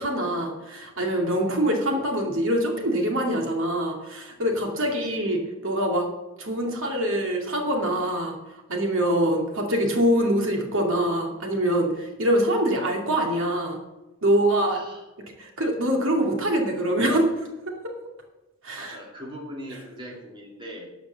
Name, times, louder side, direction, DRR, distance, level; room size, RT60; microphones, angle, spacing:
voice 1, 0.0-6.1 6.4-8.3 8.7-13.8 14.2-14.8 15.4-17.3 17.8-17.9 18.6-19.0, right 1 dB, 65° right, 1 dB, 2.5 m, -24 dB
voice 2, 14.7-15.0 18.8-20.9, equal, 25° right, -2 dB, 2.5 m, -40 dB
12.5 x 5.0 x 7.6 m, 1.0 s
head